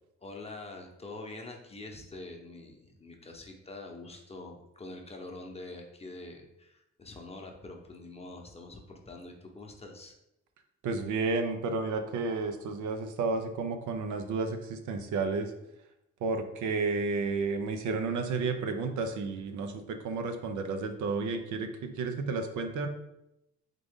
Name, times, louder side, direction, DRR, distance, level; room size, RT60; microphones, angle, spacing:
voice 1, 0.2-10.1, left 2 dB, 20° left, 1 dB, 0.8 m, -45 dB
voice 2, 10.8-15.5 16.2-22.9, right 4 dB, 75° right, 6 dB, 0.6 m, -32 dB
3.7 x 3.7 x 3.6 m, 0.85 s
cardioid pair, 90°, 30 cm